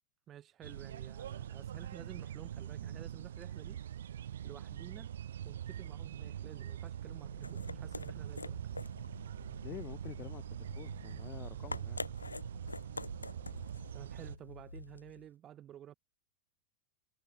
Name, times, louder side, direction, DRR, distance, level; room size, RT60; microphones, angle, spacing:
voice 1, 0.3-3.8 4.4-5.1 5.4-8.6 13.9-15.9, right 11 dB, 30° right, 1.8 m, -52 dB
sound 1, 0.6-14.4, right 10 dB, 65° right, 1.2 m, -43 dB
sound 2, 7.1-15.3, left 3 dB, 80° left, 2.7 m, -47 dB
voice 2, 9.5-12.0, left 12 dB, 30° left, 2.2 m, -48 dB
figure-of-eight pair, 90°, 0 cm